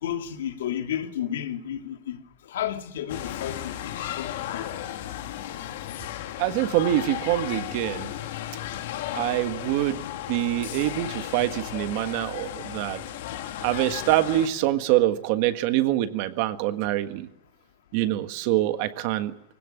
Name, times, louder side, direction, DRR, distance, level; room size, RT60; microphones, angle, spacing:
voice 1, 0.0-2.2 2.5-4.7, left 10 dB, 80° left, 2.5 m, -32 dB
sound 1, 3.1-14.5, left 12 dB, 55° left, 2.3 m, -35 dB
voice 2, 6.4-8.1 9.1-10.0 10.3-13.0 13.6-17.3 17.9-19.3, right 14 dB, 40° right, 1.6 m, -25 dB
24.0 x 17.0 x 9.1 m
supercardioid pair, 180°, 0 cm